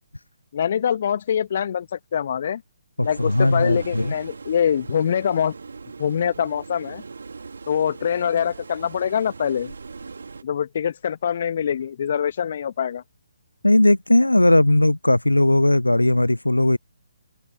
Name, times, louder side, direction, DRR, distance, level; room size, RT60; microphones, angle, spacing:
voice 1, 0.5-2.6 3.0-5.5 6.0-7.0 7.7-9.7 10.4-13.0, left 8 dB, 45° left, 1.6 m, -24 dB
voice 2, 3.0-4.1 13.6-16.8, left 1 dB, 85° left, 0.5 m, -18 dB
sound 1, 3.0-10.4, right 4 dB, 65° right, 2.9 m, -39 dB
figure-of-eight pair, 140°, 0 cm